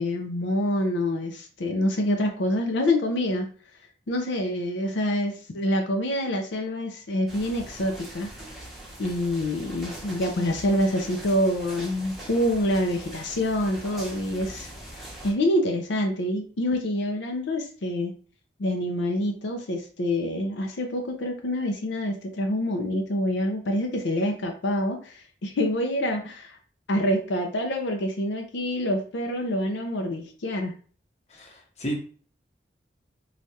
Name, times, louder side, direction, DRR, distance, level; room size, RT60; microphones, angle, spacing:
voice 1, 0.0-3.5 4.1-8.3 9.0-14.7 15.2-18.1 18.6-26.6 26.9-30.7, left 1 dB, 85° left, 4 dB, 0.5 m, -26 dB
sound 1, 7.3-15.3, right 1 dB, ahead, 0.7 m, -42 dB
voice 2, 31.4-32.0, right 1 dB, 35° left, 0 dB, 0.7 m, -32 dB
3.2 x 2.3 x 2.7 m, 0.42 s
head